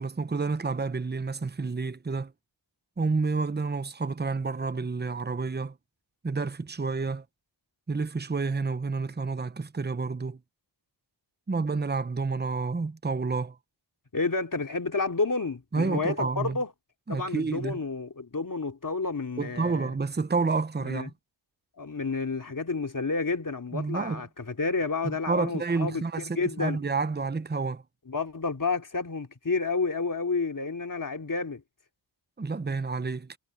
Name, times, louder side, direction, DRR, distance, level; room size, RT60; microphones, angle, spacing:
voice 1, 0.0-2.3 3.0-5.7 6.2-7.2 7.9-10.4 11.5-13.6 15.7-16.6 17.1-17.8 19.4-21.1 23.7-24.2 25.3-27.8 32.4-33.4, right 4 dB, 20° right, 0.8 m, -29 dB
voice 2, 14.1-16.7 17.1-19.9 20.8-21.1 21.8-26.0 26.3-26.8 28.1-31.6, left 4 dB, 45° left, 2.8 m, -30 dB
wide cardioid pair, 75°, 46 cm